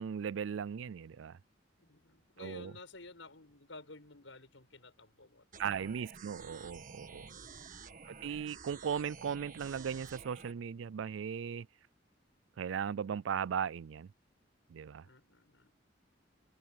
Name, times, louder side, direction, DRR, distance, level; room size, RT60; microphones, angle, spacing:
voice 1, 0.0-1.4 2.4-2.7 5.6-7.3 8.1-11.7 12.6-14.1 14.7-15.1, right 7 dB, 80° right, 0.4 m, -37 dB
voice 2, 1.8-5.6 7.0-7.7 15.0-15.7, left 3 dB, 85° left, 6.4 m, -53 dB
sound 1, 5.5-10.5, right 5 dB, 45° right, 1.7 m, -51 dB
head